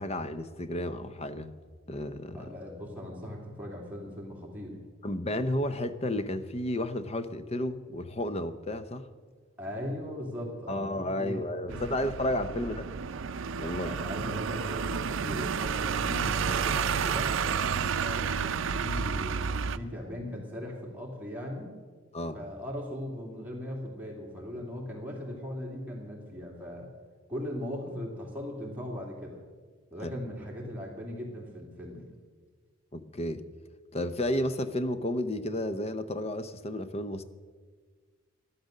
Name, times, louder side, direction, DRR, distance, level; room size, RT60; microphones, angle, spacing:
voice 1, 0.0-1.5 1.9-2.5 5.0-9.1 10.7-12.9 13.6-13.9 17.7-17.9 22.1-22.4 30.0-30.2 32.9-33.4 33.9-37.2, left 1 dB, 30° left, 11 dB, 0.7 m, -32 dB
voice 2, 2.3-4.8 9.6-11.4 11.7-12.0 12.5-12.6 13.8-17.3 17.9-21.7 22.3-26.9 27.3-29.4 29.9-32.1, left 1 dB, 10° right, -2 dB, 2.7 m, -39 dB
sound 1, 11.7-19.8, right 6 dB, 65° right, 0.5 m, -31 dB
13.0 x 12.0 x 6.5 m, 1.5 s
head